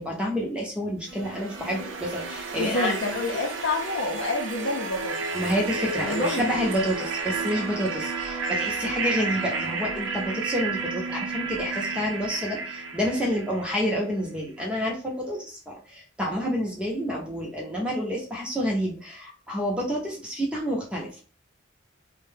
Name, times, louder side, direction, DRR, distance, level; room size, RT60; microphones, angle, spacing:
voice 1, 0.0-2.9 5.3-21.2, equal, 5° right, 0.6 m, -29 dB
sound 1, 1.1-14.0, right 4 dB, 70° right, 0.5 m, -32 dB
voice 2, 2.6-5.3 6.0-6.5, left 2 dB, 65° left, 0.5 m, -28 dB
2.7 x 2.1 x 3.2 m
head